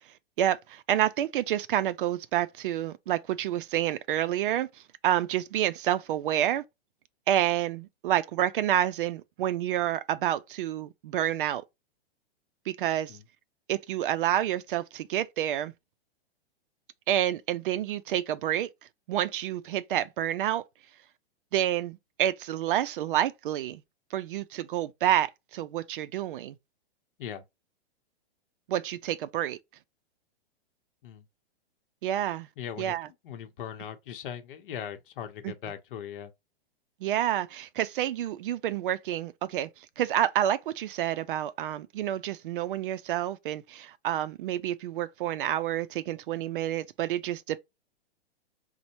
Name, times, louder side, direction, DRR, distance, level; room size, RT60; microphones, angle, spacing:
voice 1, 0.4-4.7 5.0-6.6 7.3-11.6 12.7-13.2 13.7-15.7 17.1-18.7 19.1-20.6 21.5-23.8 24.1-26.6 28.7-29.6 32.0-32.5 32.8-33.1 35.4-35.5 37.0-39.7 40.0-47.6, right 12 dB, 55° right, 0.4 m, -28 dB
voice 2, 32.6-33.0 33.2-36.3, left 9 dB, 55° left, 0.8 m, -39 dB
5.2 x 2.1 x 2.9 m
hypercardioid pair, 145°, 31 cm